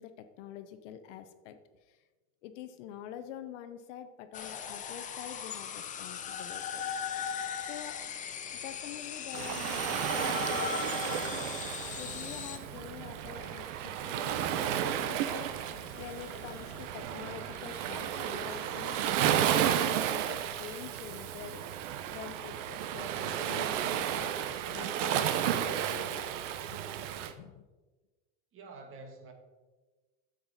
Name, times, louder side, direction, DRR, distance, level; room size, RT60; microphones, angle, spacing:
voice 1, 0.0-1.6 1.9-2.0 2.4-6.8 7.6-8.0 8.6-11.5 12.0-21.6 22.1-26.3 26.7-26.8 27.3-27.7, left 10 dB, 70° left, 9 dB, 0.8 m, -46 dB
sound 1, 4.3-12.6, left 8 dB, 20° left, 0.6 m, -38 dB
Waves surf, 9.3-27.3, right 10 dB, 75° right, 0.9 m, -33 dB
sound 2, 14.5-20.1, left 5 dB, 50° left, 1.3 m, -56 dB
voice 2, 28.5-29.3, right 3 dB, 35° right, 4 dB, 1.5 m, -48 dB
8.8 x 7.7 x 4.1 m, 1.3 s
supercardioid pair, 145°, 37 cm